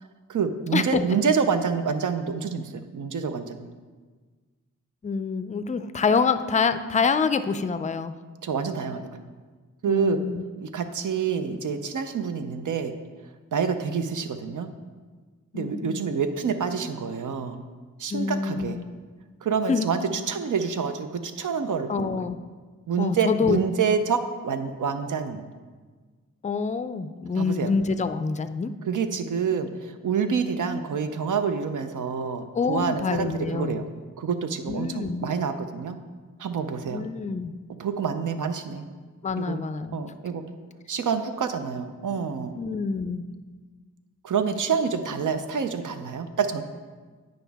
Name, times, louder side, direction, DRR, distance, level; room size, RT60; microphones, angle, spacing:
voice 1, 0.3-3.7 8.4-9.2 9.8-10.2 10.6-12.9 13.5-14.7 15.5-17.6 18.0-18.8 19.4-20.0 20.3-22.2 22.9-24.2 24.4-25.4 27.4-27.7 28.8-33.8 34.2-36.0 36.4-37.0 37.8-38.9 39.4-39.6 39.9-40.4 40.9-42.6 44.2-46.6, right 6 dB, 75° right, 9 dB, 0.6 m, -27 dB
voice 2, 5.0-8.2 9.9-10.4 15.5-16.0 18.1-18.9 19.7-19.9 21.9-22.4 23.0-23.6 26.4-28.7 32.5-33.8 34.7-35.3 36.9-37.6 39.2-40.0 42.6-43.2, left 5 dB, 25° left, 11 dB, 0.4 m, -26 dB
9.1 x 5.1 x 3.4 m, 1.4 s
cardioid pair, 55°, 32 cm